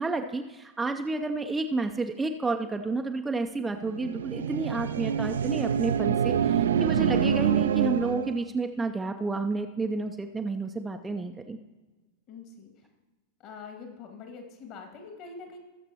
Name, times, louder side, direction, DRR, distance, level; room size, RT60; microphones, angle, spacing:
voice 1, 0.0-11.6, right 3 dB, 10° right, 5 dB, 0.5 m, -30 dB
sound 1, 3.8-8.5, right 8 dB, 65° right, 0.4 m, -26 dB
voice 2, 12.3-12.7 13.4-15.6, left 4 dB, 40° left, 4 dB, 2.0 m, -44 dB
20.5 x 6.8 x 2.9 m, 1.3 s
figure-of-eight pair, 90°, 0 cm